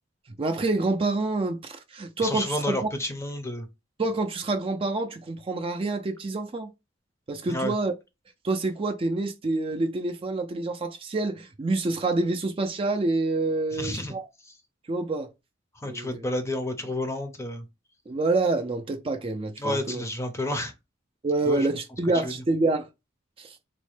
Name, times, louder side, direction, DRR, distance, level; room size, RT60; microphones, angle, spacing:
voice 1, 0.4-2.9 4.0-6.7 7.3-7.9 8.4-14.3 14.9-15.3 15.8-16.2 18.1-20.0 21.2-22.9 23.4-23.6, right 2 dB, 30° right, 0.4 m, -27 dB
voice 2, 2.2-3.7 7.5-7.7 13.7-14.1 14.4-14.5 15.8-17.6 19.6-20.7 21.5-21.7 22.2-22.3, left 1 dB, 15° left, 0.6 m, -30 dB
4.0 x 2.1 x 3.2 m
head